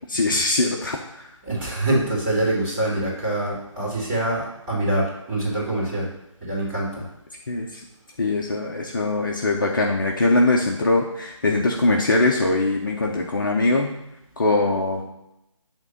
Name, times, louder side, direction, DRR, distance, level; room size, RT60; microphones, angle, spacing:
voice 1, 0.1-1.3 7.5-7.8 8.2-13.9 14.4-15.0, left 2 dB, 40° left, 0 dB, 0.9 m, -22 dB
voice 2, 1.4-6.1 6.4-7.1, right 1 dB, 10° right, -11 dB, 3.1 m, -25 dB
8.4 x 3.7 x 6.6 m, 0.87 s
figure-of-eight pair, 155°, 17 cm